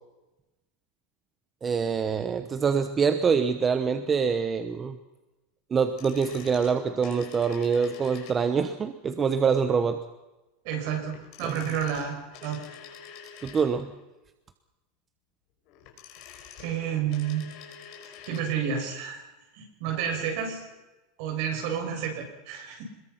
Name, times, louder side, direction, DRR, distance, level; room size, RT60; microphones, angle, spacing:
voice 1, 1.6-5.0 5.7-10.0 11.4-11.5 13.4-13.9, right 6 dB, 20° right, 9 dB, 1.1 m, -25 dB
sound 1, 5.8-8.7 11.1-14.0 15.6-18.5 18.8-18.9, left 8 dB, 45° left, 5.8 m, -47 dB
voice 2, 10.6-12.2 12.4-12.6 16.6-17.4 18.3-19.2 19.5-20.7 21.2-22.8, right 8 dB, 55° right, 3 dB, 7.4 m, -30 dB
27.0 x 21.5 x 5.9 m, 1.0 s
supercardioid pair, 155°, 0 cm